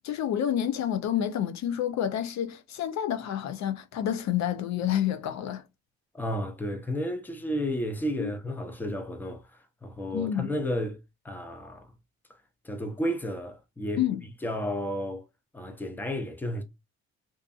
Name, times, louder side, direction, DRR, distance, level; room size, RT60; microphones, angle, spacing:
voice 1, 0.0-5.6 8.2-8.3 10.1-10.5 14.0-14.2, left 10 dB, 65° left, 0.4 m, -29 dB
voice 2, 6.1-9.4 9.8-11.0 11.2-11.9 12.6-14.0 14.4-15.2 15.5-16.6, equal, 5° left, 0.6 m, -32 dB
2.6 x 2.5 x 2.3 m
cardioid pair, 90°, 30 cm